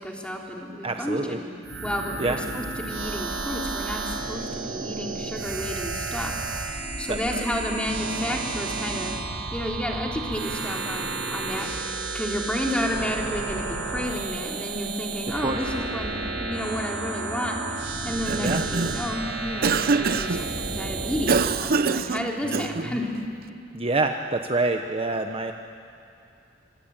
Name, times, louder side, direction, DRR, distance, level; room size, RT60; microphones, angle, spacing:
voice 1, 0.0-1.5 1.8-9.1 9.5-16.1 16.4-23.1, equal, 5° left, -1 dB, 3.4 m, -31 dB
voice 2, 0.8-1.4 2.2-2.4 7.1-7.5 15.4-15.6 18.4-18.6 22.4-23.0 23.7-25.5, right 2 dB, 30° right, 5 dB, 0.9 m, -27 dB
sound 1, 1.6-21.6, right 3 dB, 75° right, 5.0 m, -32 dB
Cough, 18.1-19.1 19.6-20.4 21.3-22.9, right 4 dB, 55° right, 0.7 m, -25 dB
26.0 x 25.0 x 8.9 m, 2.6 s
head